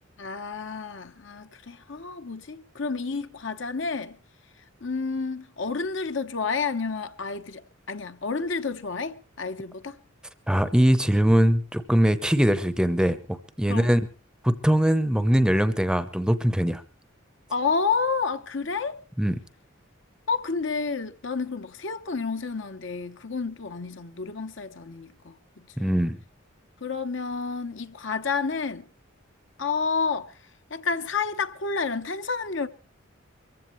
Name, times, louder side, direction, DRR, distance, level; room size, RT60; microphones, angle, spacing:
voice 1, 0.2-4.2 4.8-10.0 13.7-13.9 17.5-19.0 20.3-25.3 25.8-25.9 26.8-28.8 29.6-30.3 30.7-32.7, left 4 dB, 65° left, 1.0 m, -30 dB
voice 2, 10.5-14.0 14.4-16.8 19.2-19.4 25.8-26.2, equal, 5° right, 0.7 m, -22 dB
23.5 x 15.0 x 3.1 m
head